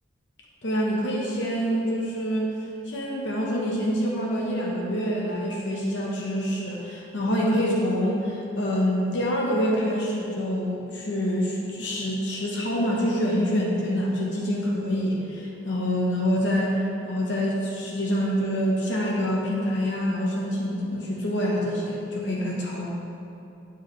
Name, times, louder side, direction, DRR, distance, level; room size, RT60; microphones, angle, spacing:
voice 1, 0.6-2.5 2.9-22.9, equal, 70° left, -3 dB, 0.9 m, -26 dB
7.9 x 4.5 x 3.2 m, 2.8 s
head